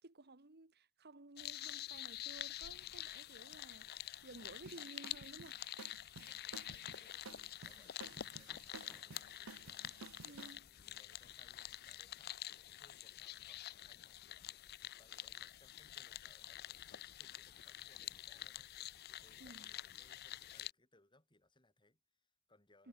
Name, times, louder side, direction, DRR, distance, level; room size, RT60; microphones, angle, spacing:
voice 1, 0.0-3.9 4.2-5.6 10.2-10.6 19.4-19.7 22.8-22.9, right 2 dB, 50° right, 1.6 m, -55 dB
sound 1, 1.4-20.7, left 13 dB, 45° left, 0.5 m, -48 dB
sound 2, 4.6-10.5, right 4 dB, 70° right, 1.3 m, -55 dB
voice 2, 6.3-22.9, left 2 dB, 20° left, 3.4 m, -71 dB
Hammer, 7.9-13.1, equal, ahead, 5.6 m, -74 dB
head